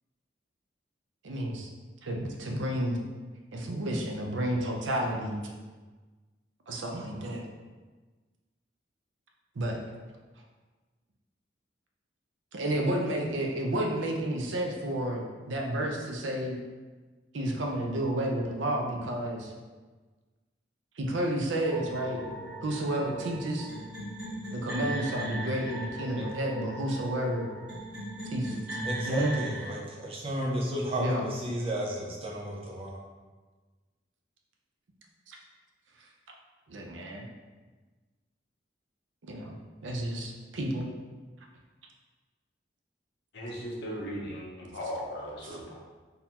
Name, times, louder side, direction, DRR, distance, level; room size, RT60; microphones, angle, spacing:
voice 1, 1.2-1.7 2.0-3.0 3.5-5.4 6.7-7.4 9.6-9.8 12.5-16.6 17.3-19.5 21.0-22.2 22.6-23.7 24.5-27.5 28.3-29.4 31.0-31.3 35.3-35.4 36.7-37.2 39.2-39.6 39.8-40.9 45.4-45.6, right 1 dB, 85° right, 1 dB, 0.6 m, -31 dB
sound 1, 21.7-29.7, right 1 dB, 5° right, 1.4 m, -38 dB
voice 2, 28.8-33.0, right 1 dB, 30° right, -2 dB, 0.6 m, -33 dB
voice 3, 43.3-45.7, equal, 65° left, -3 dB, 0.9 m, -37 dB
3.9 x 2.7 x 2.8 m, 1.3 s
head